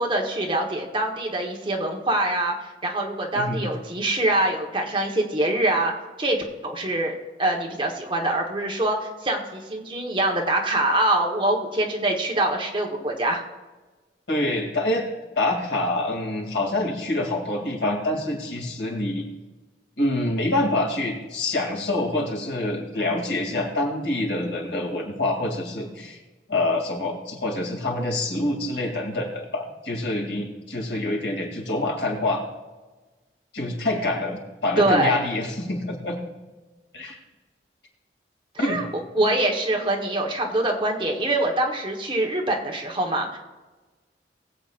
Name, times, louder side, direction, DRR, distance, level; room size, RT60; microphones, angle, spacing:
voice 1, 0.0-2.5 2.8-5.9 6.2-6.4 6.6-7.1 7.4-13.4 34.8-35.2 38.5-38.8 39.1-43.4, right 1 dB, 30° right, 1 dB, 1.4 m, -24 dB
voice 2, 3.3-3.7 14.3-15.1 15.4-19.2 20.0-26.2 26.5-32.4 33.5-36.2 36.9-37.2 38.6-38.8, left 2 dB, 85° left, 0 dB, 2.7 m, -26 dB
20.5 x 8.2 x 2.6 m, 1.2 s
head